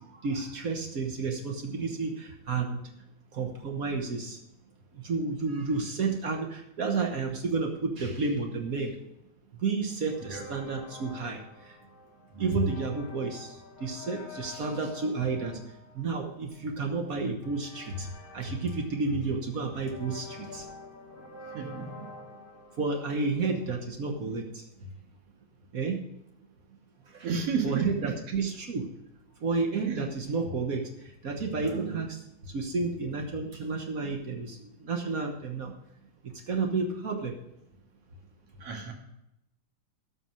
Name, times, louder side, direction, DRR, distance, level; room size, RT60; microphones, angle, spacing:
voice 1, 0.0-2.8 3.3-4.4 4.9-9.0 9.6-11.8 12.4-15.6 15.9-20.7 22.8-24.7 25.7-26.0 27.1-27.3 27.6-28.9 29.4-35.7 36.2-37.4, right 4 dB, 80° right, 2 dB, 0.7 m, -31 dB
sound 1, 10.1-23.9, left 3 dB, 25° left, 1.0 m, -48 dB
voice 2, 12.3-12.7 21.5-22.1 27.2-28.2 29.9-30.0 31.6-32.0 38.6-38.9, right 5 dB, 55° right, 1 dB, 2.9 m, -33 dB
12.5 x 6.2 x 6.3 m, 0.84 s
omnidirectional pair, 3.3 m